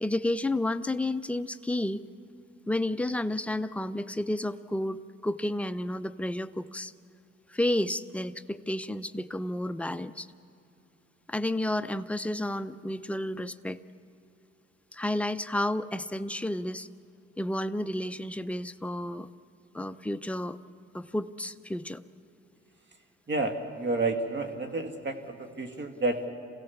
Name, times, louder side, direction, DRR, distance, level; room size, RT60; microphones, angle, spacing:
voice 1, 0.0-2.0 2.7-6.9 7.5-10.3 11.3-13.8 14.9-16.9 17.4-19.3 19.7-20.6 20.9-22.0, left 1 dB, 5° left, 11 dB, 0.6 m, -31 dB
voice 2, 23.3-26.3, right 2 dB, 35° right, 6 dB, 2.2 m, -30 dB
27.0 x 16.5 x 7.2 m, 2.8 s
cardioid pair, 90°, 30 cm